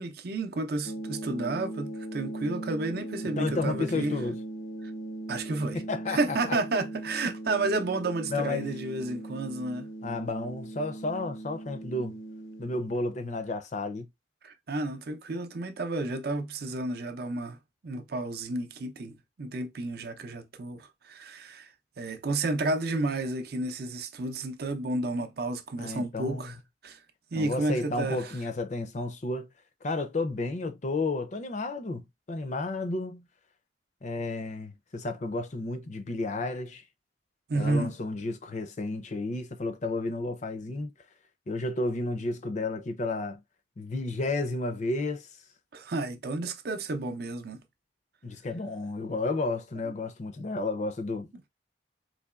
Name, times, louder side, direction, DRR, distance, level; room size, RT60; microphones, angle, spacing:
voice 1, 0.0-4.2 4.8-4.9 5.3-5.8 6.1-9.9 14.4-17.6 17.8-26.5 26.8-27.0 27.3-28.3 37.5-37.9 45.7-47.6, right 2 dB, 55° right, 0.5 m, -31 dB
sound 1, 0.8-12.8, right 1 dB, 85° left, 0.7 m, -39 dB
voice 2, 3.4-4.4 5.7-6.6 8.3-8.7 10.0-12.2 12.6-14.1 25.8-26.5 27.3-29.5 29.8-33.3 34.0-36.8 37.5-40.9 41.5-43.4 43.8-45.3 48.2-51.3, left 2 dB, 40° left, 0.5 m, -32 dB
3.9 x 2.9 x 2.3 m
head